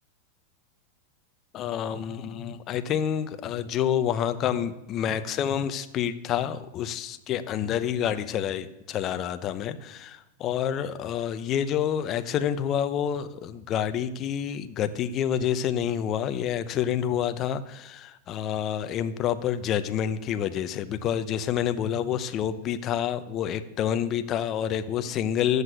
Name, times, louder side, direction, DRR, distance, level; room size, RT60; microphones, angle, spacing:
voice 1, 1.5-25.6, left 9 dB, 30° left, 11 dB, 0.8 m, -28 dB
12.0 x 8.1 x 7.9 m, 0.90 s
supercardioid pair, 140°, 0 cm